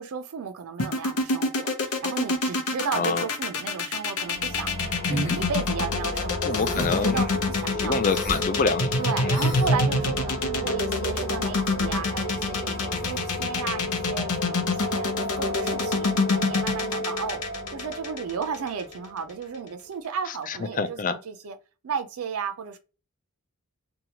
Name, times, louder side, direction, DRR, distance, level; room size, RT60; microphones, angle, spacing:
voice 1, 0.0-4.7 5.0-8.0 9.0-17.4 17.7-21.6 21.8-22.8, right 6 dB, 70° right, 0.5 m, -34 dB
sound 1, 0.8-18.9, left 3 dB, 90° left, 0.8 m, -26 dB
voice 2, 2.9-3.3 6.4-7.2 7.8-8.9 9.2-9.3 20.8-21.1, left 4 dB, 35° left, 0.4 m, -26 dB
sound 2, 4.1-19.7, left 1 dB, 60° left, 0.7 m, -32 dB
sound 3, 5.1-5.4 6.5-7.1 8.0-8.4 9.3-9.7, equal, 15° left, 1.0 m, -31 dB
2.8 x 2.2 x 2.8 m
head